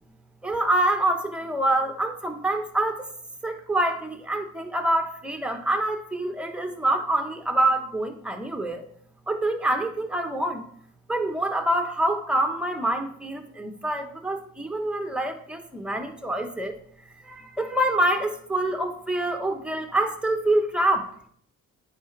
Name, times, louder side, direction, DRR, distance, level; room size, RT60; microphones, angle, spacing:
voice 1, 0.4-3.1 3.4-8.8 9.3-10.7 11.1-16.7 17.2-21.1, right 1 dB, 5° right, 6 dB, 1.0 m, -26 dB
9.2 x 4.9 x 3.3 m, 0.62 s
cardioid pair, 90°, 30 cm